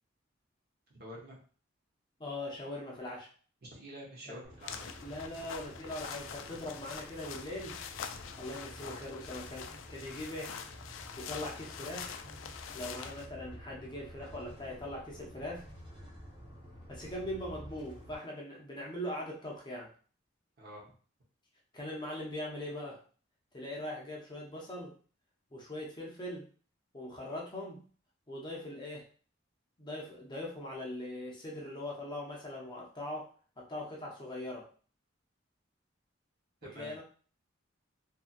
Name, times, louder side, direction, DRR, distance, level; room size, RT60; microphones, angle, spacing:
voice 1, 0.9-1.4 3.7-4.9 16.0-16.2 20.6-21.0 36.6-37.0, equal, 55° right, -4 dB, 1.0 m, -48 dB
voice 2, 2.2-3.3 4.3-4.4 5.0-7.8 8.4-10.5 11.2-12.1 12.7-15.7 16.9-19.9 21.7-23.0 23.5-24.9 25.5-26.5 26.9-27.8 28.3-29.1 29.8-33.3 33.6-34.7 36.6-37.0, left 1 dB, 25° left, -2 dB, 0.6 m, -41 dB
sound 1, 4.4-18.2, equal, 25° right, 0.7 m, -51 dB
sound 2, 4.6-13.3, left 7 dB, 85° left, 0.3 m, -45 dB
2.7 x 2.6 x 2.5 m, 0.42 s
head